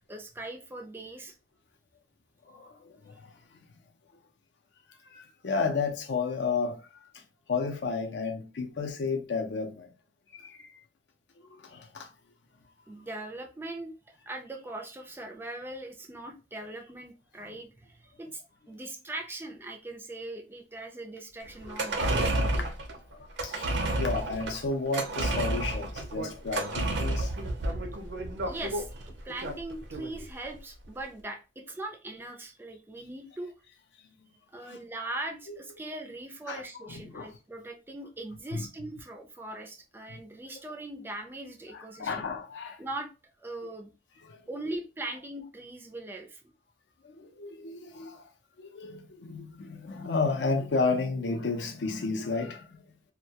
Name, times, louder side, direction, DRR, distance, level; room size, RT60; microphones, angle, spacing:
voice 1, 0.1-1.3 12.9-22.6 28.5-33.5 34.5-42.2 42.8-43.1 43.4-43.9 44.5-46.4, right 2 dB, 15° right, 0.3 m, -40 dB
voice 2, 2.4-3.6 5.0-7.2 7.5-9.9 10.3-10.7 11.4-12.1 17.4-17.5 21.6-22.0 22.5-22.7 23.1-27.6 28.1-28.2 34.0-34.3 34.6-34.8 36.5-37.3 38.5-38.7 40.1-40.2 41.7-42.8 44.2-44.4 47.0-48.3 48.6-52.9, left 4 dB, 80° left, 0.5 m, -33 dB
sound 1, 21.6-30.2 30.5-30.6, right 1 dB, 80° right, 0.5 m, -31 dB
2.2 x 2.1 x 2.7 m
head